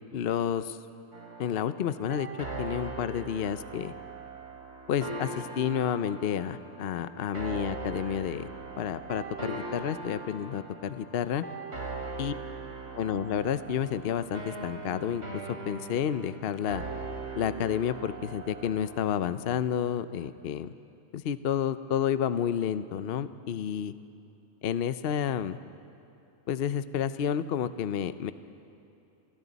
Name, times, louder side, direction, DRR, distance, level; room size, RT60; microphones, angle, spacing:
voice 1, 0.1-0.8 1.4-2.3 2.6-3.9 4.9-8.5 8.8-11.4 12.2-12.3 12.9-15.2 15.5-16.8 17.4-20.7 21.1-23.9 24.6-25.6 26.5-28.3, left 9 dB, 55° left, 12 dB, 0.7 m, -30 dB
sound 1, 1.1-19.1, right 3 dB, 65° right, 3.1 m, -40 dB
29.5 x 27.5 x 4.1 m, 2.8 s
omnidirectional pair, 1.4 m